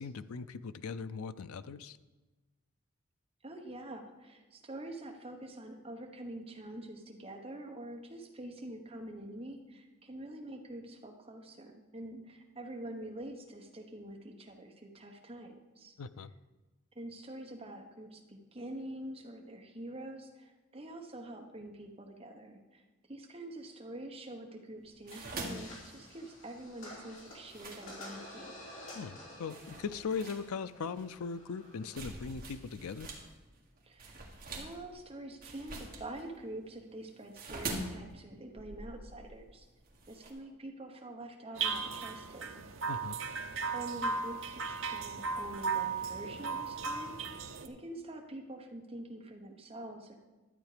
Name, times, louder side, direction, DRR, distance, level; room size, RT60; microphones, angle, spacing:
voice 1, 0.0-2.0 16.0-16.3 28.9-33.1 42.9-43.2, left 5 dB, 90° left, 13 dB, 0.5 m, -39 dB
voice 2, 3.4-15.9 16.9-28.5 33.8-34.2 34.6-39.7 40.1-42.7 43.7-47.2 47.6-50.2, right 1 dB, 25° right, 2 dB, 1.1 m, -46 dB
sound 1, 24.8-28.4 29.0-29.1 29.5-33.3 33.5-40.3, right 2 dB, 45° right, 1.8 m, -44 dB
sound 2, 25.1-32.2, left 1 dB, 60° left, 3.5 m, -51 dB
sound 3, 41.6-47.7, right 5 dB, 65° right, 0.8 m, -36 dB
12.0 x 8.1 x 5.0 m, 1.2 s
head